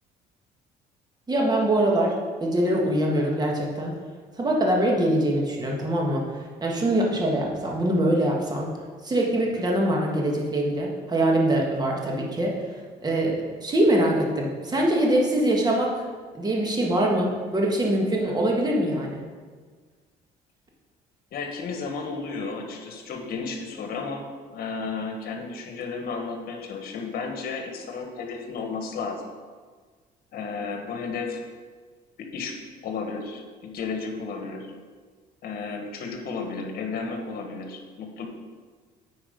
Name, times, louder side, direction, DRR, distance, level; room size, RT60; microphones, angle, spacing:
voice 1, 1.3-3.9 4.4-8.7 9.0-12.6 13.0-16.0 16.3-19.2, right 1 dB, 25° right, -1 dB, 1.8 m, -23 dB
voice 2, 21.3-24.3 24.5-29.2 30.3-31.4 32.2-32.6 32.8-34.7 35.4-38.3, left 4 dB, 65° left, 3 dB, 1.5 m, -33 dB
8.8 x 4.8 x 5.2 m, 1.5 s
cardioid pair, 110°, 17 cm